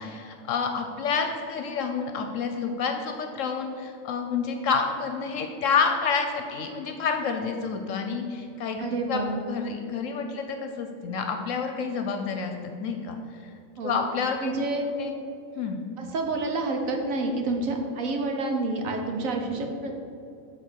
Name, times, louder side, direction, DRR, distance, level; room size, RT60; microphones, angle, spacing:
voice 1, 0.0-12.5 12.8-13.2 13.8-14.5 15.0-15.2 15.5-15.8, left 5 dB, 75° left, 5 dB, 1.0 m, -29 dB
voice 2, 8.8-9.4 13.8-14.0 14.4-14.9 16.0-20.0, right 2 dB, 85° right, 2 dB, 1.4 m, -28 dB
7.8 x 3.9 x 6.3 m, 2.7 s
omnidirectional pair, 1.4 m